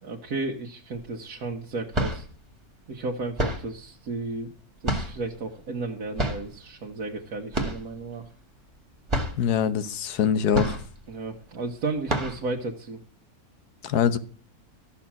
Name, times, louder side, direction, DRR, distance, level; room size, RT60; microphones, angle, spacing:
voice 1, 0.0-2.2 2.9-4.5 4.8-8.3 11.1-13.0, right 3 dB, 75° right, 1.8 m, -33 dB
sound 1, 1.0-1.1 1.7-2.4 3.4-3.8 4.8-5.4 6.2-6.5 7.5-8.0 8.2-8.3 8.7-8.8 9.1-9.5 10.5-11.1 11.5-11.6 12.1-12.5, right 1 dB, 20° right, 2.1 m, -28 dB
voice 2, 9.4-10.8 13.8-14.2, left 8 dB, 90° left, 1.5 m, -23 dB
13.5 x 7.2 x 7.3 m
omnidirectional pair, 1.6 m